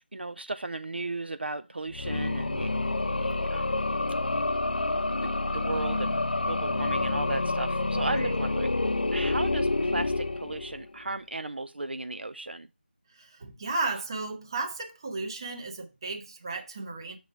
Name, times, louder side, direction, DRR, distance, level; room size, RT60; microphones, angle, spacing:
voice 1, 0.0-2.7 3.0-3.8 5.2-8.7 9.1-12.7, right 2 dB, 70° right, 0.4 m, -35 dB
sound 1, 1.9-11.0, left 2 dB, 60° left, 0.4 m, -28 dB
voice 2, 8.0-8.4 13.1-17.2, right 3 dB, 25° right, 0.8 m, -34 dB
6.6 x 3.1 x 5.5 m
figure-of-eight pair, 165°, 6 cm